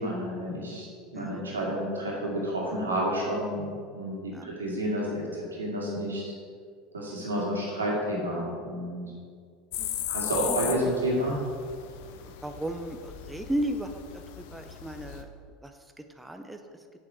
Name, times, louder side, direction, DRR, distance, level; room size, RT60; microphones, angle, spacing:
voice 1, 0.0-3.7 3.9-6.2 6.9-9.0 10.1-11.4, equal, 85° right, -4 dB, 2.3 m, -30 dB
voice 2, 1.1-1.5 4.3-4.5 7.5-7.6 9.0-9.2 9.8-10.1 10.4-10.6 12.0-15.3 15.6-15.7 16.2-16.6, right 1 dB, 5° right, 6 dB, 0.6 m, -35 dB
sound 1, 9.7-15.2, left 11 dB, 60° left, 0.6 m, -37 dB
7.8 x 7.1 x 4.5 m, 2.1 s
figure-of-eight pair, 75°, 0 cm